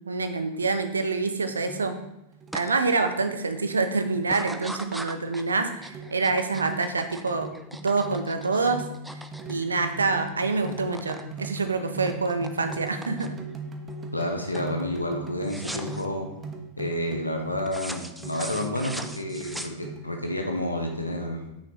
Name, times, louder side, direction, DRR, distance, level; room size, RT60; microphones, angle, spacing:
voice 1, 0.0-1.9 2.5-7.5 7.8-8.8 9.5-13.4, right 3 dB, 75° right, 8 dB, 0.6 m, -26 dB
sound 1, 1.5-2.0 2.3-2.7 3.1-3.4 3.7-4.4 5.0-5.1 5.5-20.2, right 2 dB, 25° right, 0.8 m, -40 dB
sound 2, 2.5-2.7 3.1-3.6 4.2-10.3 10.5-11.3 11.6-13.5 14.0-14.3 14.5-14.8 15.4-16.0 17.7-20.2, right 1 dB, 5° right, 0.4 m, -40 dB
voice 2, 14.1-16.3 16.8-21.4, left 1 dB, 85° left, 3 dB, 0.9 m, -30 dB
6.0 x 5.7 x 2.9 m, 0.89 s
figure-of-eight pair, 90°, 0 cm